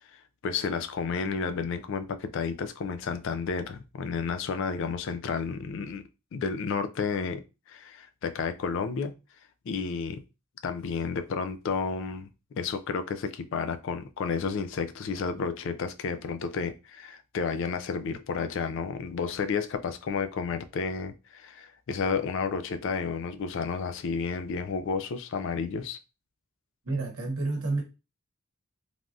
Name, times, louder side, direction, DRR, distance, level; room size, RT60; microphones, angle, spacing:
voice 1, 0.1-6.0 6.3-7.4 7.7-9.1 9.7-10.2 10.6-12.3 12.6-26.0, left 5 dB, 60° left, 0.3 m, -31 dB
voice 2, 26.8-27.8, right 3 dB, 75° right, 0.9 m, -29 dB
3.3 x 2.3 x 2.5 m
head